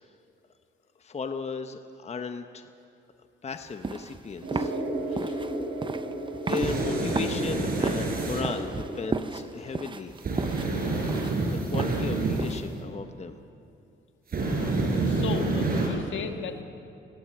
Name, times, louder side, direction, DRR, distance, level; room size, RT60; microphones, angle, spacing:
voice 1, 1.0-2.7 3.4-4.7 5.2-5.5 6.4-10.1 10.8-13.4, left 4 dB, 35° left, 7 dB, 1.1 m, -36 dB
sound 1, 3.5-12.8, right 4 dB, 25° right, 0.8 m, -35 dB
sound 2, 4.4-9.4, right 1 dB, 80° right, 7.0 m, -33 dB
voice 2, 5.1-5.4 15.0-16.6, left 7 dB, 75° left, 6 dB, 1.7 m, -36 dB
sound 3, 6.5-8.4 10.2-12.5 14.3-15.9, right 3 dB, 50° right, 5.5 m, -28 dB
21.5 x 16.5 x 7.9 m, 2.6 s
cardioid pair, 90°, 20 cm